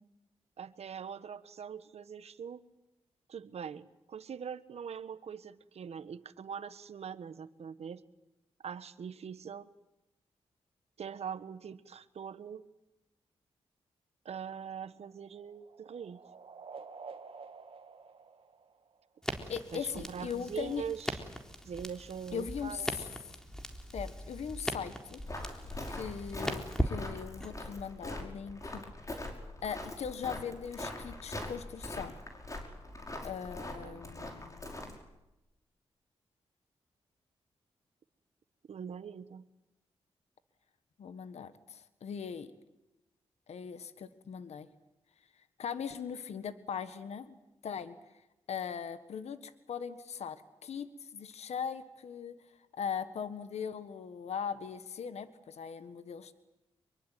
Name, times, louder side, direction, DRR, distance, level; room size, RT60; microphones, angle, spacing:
voice 1, 0.6-2.6 3.3-8.0 8.6-9.7 11.0-12.6 14.2-16.2 19.7-21.2 21.6-23.1 33.8-34.0 38.7-39.5, right 7 dB, 70° right, 13 dB, 1.4 m, -42 dB
sound 1, 14.7-19.3, right 5 dB, 55° right, 2.5 m, -50 dB
Crackle, 19.2-27.5, equal, 5° left, 3.8 m, -39 dB
voice 2, 19.5-20.8 22.3-23.0 23.9-25.2 25.9-28.9 29.6-32.1 33.2-34.9 41.0-42.5 43.5-44.7 45.6-47.3 47.6-47.9 48.5-52.4 52.7-56.3, left 7 dB, 80° left, 12 dB, 1.6 m, -40 dB
Walk footsteps, 25.3-35.0, left 1 dB, 30° left, 5.7 m, -42 dB
24.5 x 23.5 x 9.2 m, 0.94 s
cardioid pair, 65°, 11 cm